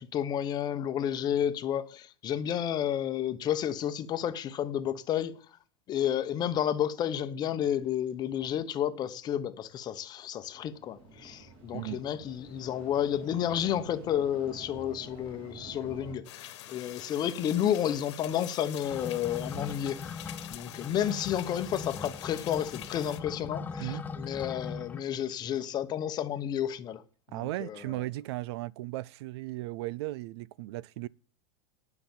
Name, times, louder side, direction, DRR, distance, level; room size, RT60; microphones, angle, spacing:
voice 1, 0.0-5.4 5.9-27.0 27.3-27.8, left 10 dB, 30° left, 0.9 m, -31 dB
sound 1, 10.5-16.2, right 2 dB, 40° right, 4.4 m, -49 dB
voice 2, 11.7-12.0 23.8-24.0 27.3-31.1, right 18 dB, 65° right, 0.4 m, -36 dB
sound 2, 16.2-23.2, left 13 dB, 80° left, 1.5 m, -46 dB
sound 3, 18.8-25.0, left 5 dB, 10° left, 0.5 m, -40 dB
10.5 x 5.9 x 7.2 m
supercardioid pair, 150°, 15 cm